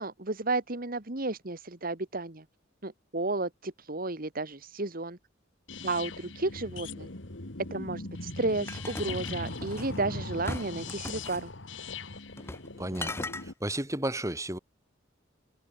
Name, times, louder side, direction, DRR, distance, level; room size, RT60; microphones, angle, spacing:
voice 1, 0.0-2.4 2.8-5.2 5.8-7.1 7.7-11.5, right 2 dB, 50° right, 1.9 m, -32 dB
sound 1, 5.7-13.5, left 3 dB, 70° left, 2.4 m, -40 dB
sound 2, 8.7-10.0 10.4-11.5 12.4-12.7 12.9-13.4, left 2 dB, 15° left, 0.9 m, -38 dB
voice 2, 12.7-14.6, right 1 dB, 15° right, 5.4 m, -33 dB
head